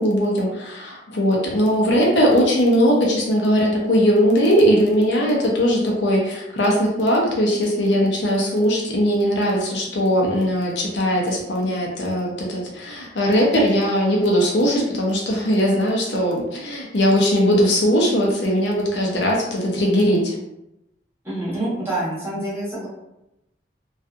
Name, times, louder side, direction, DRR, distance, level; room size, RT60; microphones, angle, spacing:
voice 1, 0.0-20.3, equal, 75° left, -2 dB, 0.6 m, -19 dB
voice 2, 21.2-22.9, right 1 dB, 15° right, -9 dB, 1.0 m, -26 dB
2.6 x 2.3 x 2.4 m, 0.88 s
head